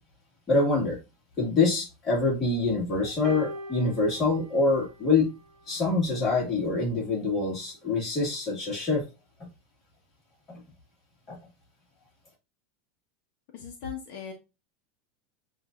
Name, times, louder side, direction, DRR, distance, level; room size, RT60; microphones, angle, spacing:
voice 1, 0.5-1.0 1.4-5.3 5.7-9.0 11.3-11.4, left 3 dB, 20° left, -3 dB, 1.9 m, -25 dB
sound 1, 3.2-5.7 6.7-6.9, right 1 dB, 30° right, 1.5 m, -41 dB
voice 2, 13.5-14.3, left 7 dB, 55° left, 1 dB, 1.1 m, -38 dB
7.7 x 2.7 x 2.5 m, 0.27 s
supercardioid pair, 165°, 0 cm